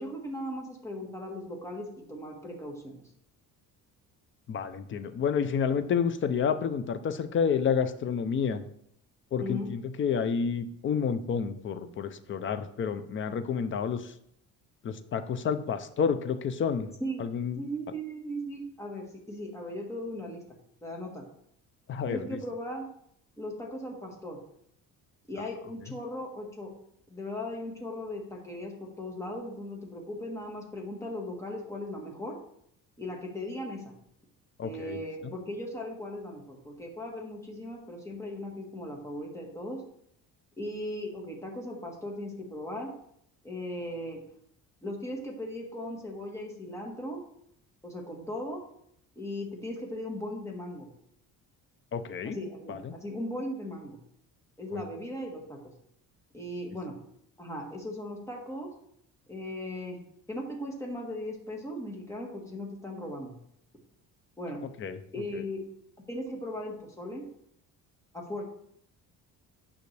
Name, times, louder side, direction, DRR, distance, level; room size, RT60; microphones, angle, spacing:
voice 1, 0.0-3.0 9.4-9.7 17.0-17.2 17.6-20.4 20.8-21.3 22.1-22.9 23.4-24.4 25.3-26.7 27.1-32.3 33.0-33.9 34.6-39.8 40.6-42.9 43.4-44.2 44.8-47.2 47.8-48.6 49.1-50.9 52.3-54.0 54.6-55.7 56.3-56.9 57.4-58.7 59.3-60.0 60.3-63.3 64.4-64.6 65.1-65.6 66.1-67.3 68.1-68.4, left 1 dB, 10° left, -1 dB, 1.6 m, -38 dB
voice 2, 4.5-8.6 9.3-14.1 14.8-16.9 17.2-17.6 21.9-22.4 34.6-35.0 51.9-52.4 52.7-52.9 54.7-54.8 64.8-65.0 65.3-65.4, left 6 dB, 35° left, 10 dB, 0.6 m, -29 dB
9.3 x 5.6 x 3.4 m, 0.70 s
cardioid pair, 150°, 35 cm